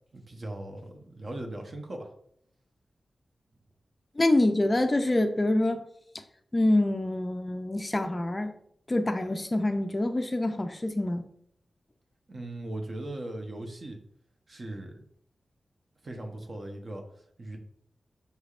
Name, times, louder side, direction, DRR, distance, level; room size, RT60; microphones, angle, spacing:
voice 1, 0.1-2.1 12.3-14.0 14.5-15.0 16.0-17.0 17.4-17.6, right 1 dB, 45° right, 3 dB, 0.7 m, -38 dB
voice 2, 4.2-5.8 6.5-8.5 8.9-11.3, left 1 dB, 25° left, 7 dB, 0.3 m, -26 dB
5.4 x 3.3 x 2.4 m, 0.68 s
wide cardioid pair, 105°, 0 cm